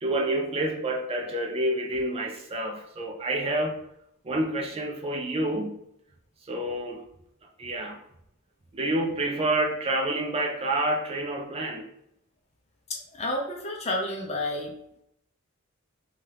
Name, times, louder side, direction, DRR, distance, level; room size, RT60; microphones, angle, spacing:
voice 1, 0.0-3.8 4.2-5.8 6.5-7.0 7.6-8.0 8.7-11.9, right 1 dB, 30° right, 1 dB, 0.4 m, -28 dB
voice 2, 12.9-14.7, left 1 dB, 30° left, 0 dB, 0.6 m, -30 dB
2.8 x 2.4 x 3.2 m, 0.74 s
head